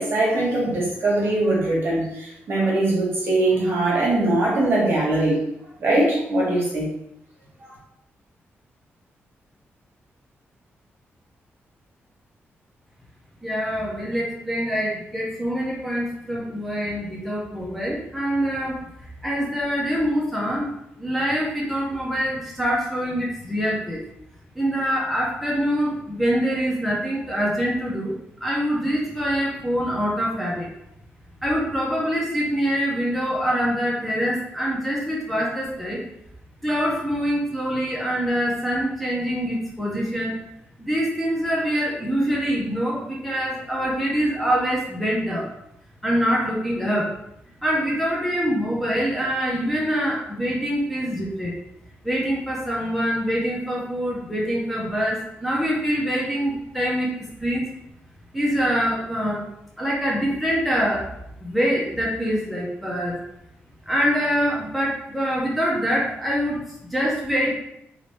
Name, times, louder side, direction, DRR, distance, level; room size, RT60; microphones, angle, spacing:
voice 1, 0.0-5.4 5.8-6.9 7.6-7.7, right 2 dB, 55° right, -4 dB, 1.2 m, -21 dB
voice 2, 13.4-20.7 21.0-24.0 24.5-28.1 28.4-30.7 31.4-36.0 36.6-40.4 40.8-45.5 46.0-47.2 47.6-51.6 52.0-57.1 57.4-57.7 58.3-59.4 59.8-61.1 61.4-63.2 63.9-67.6, equal, ahead, -5 dB, 0.7 m, -24 dB
2.8 x 2.7 x 3.2 m, 0.80 s
wide cardioid pair, 130°, 5 cm